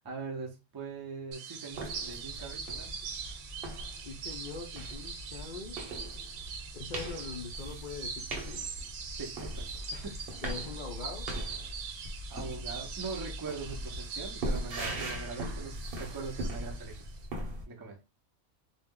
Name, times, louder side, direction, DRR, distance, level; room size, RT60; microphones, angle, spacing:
voice 1, 0.0-2.9 9.2-10.3 12.3-17.1 17.7-18.0, right 4 dB, 35° right, -1 dB, 0.4 m, -42 dB
sound 1, 1.3-17.3, right 6 dB, 80° right, 1.0 m, -43 dB
sound 2, 1.7-17.6, right 1 dB, 50° right, 0.9 m, -40 dB
voice 2, 4.1-5.8 6.7-8.6 10.4-11.3, left 4 dB, 80° left, 2 dB, 0.4 m, -42 dB
2.4 x 2.0 x 3.6 m, 0.27 s
omnidirectional pair, 1.4 m